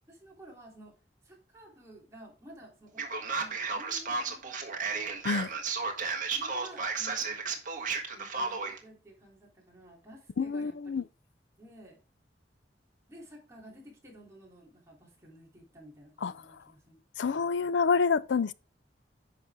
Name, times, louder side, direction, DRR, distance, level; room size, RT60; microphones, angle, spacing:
voice 1, 0.1-0.9 1.2-3.0 3.4-5.1 6.3-7.6 8.1-11.1 11.6-12.0 13.1-17.0, right 1 dB, 15° right, 3.4 m, -53 dB
Male speech man speaking, 3.0-8.8, right 4 dB, 45° right, 1.7 m, -33 dB
voice 2, 10.4-11.0 16.2-16.3 17.2-18.5, left 5 dB, 75° left, 0.5 m, -27 dB
9.9 x 6.0 x 3.6 m
head